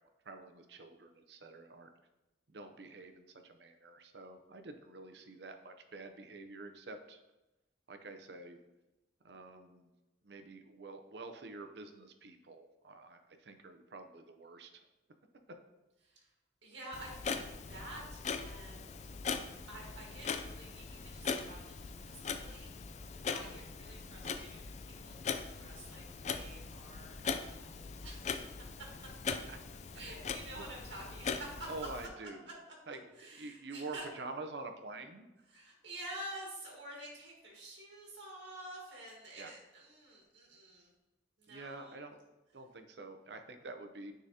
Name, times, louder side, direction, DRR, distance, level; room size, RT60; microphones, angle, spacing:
voice 1, 0.2-1.9 2.5-7.2 7.9-8.6 9.2-9.9 10.2-14.7 29.5-29.8 31.7-32.5 32.9-35.3 39.4-39.5 41.5-42.2 42.5-44.1, right 3 dB, 65° right, 7 dB, 0.6 m, -47 dB
voice 2, 16.6-19.0 19.7-23.0 23.3-28.5 29.9-31.7 33.2-34.0 35.5-40.9 41.4-42.0, right 1 dB, 80° right, -2 dB, 1.5 m, -49 dB
Clock, 16.9-32.1, left 5 dB, 40° left, 0.3 m, -41 dB
9.6 x 3.7 x 2.8 m, 1.0 s
head